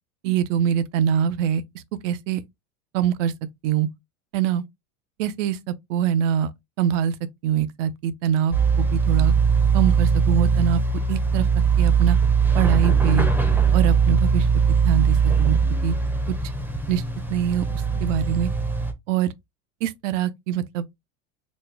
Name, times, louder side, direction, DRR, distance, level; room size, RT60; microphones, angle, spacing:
voice 1, 0.2-1.6 2.0-2.4 2.9-3.3 3.6-3.9 4.3-4.6 5.2-6.5 6.8-7.2 7.4-9.3 9.7-10.8 11.1-11.5 11.8-12.2 12.5-13.3 13.7-15.9 16.9-17.0 17.3-18.5 19.1-19.3 19.8-20.8, right 9 dB, 65° right, 0.7 m, -24 dB
sound 1, 8.5-18.9, right 5 dB, 5° right, 0.6 m, -20 dB
4.2 x 2.2 x 3.3 m
supercardioid pair, 140°, 40 cm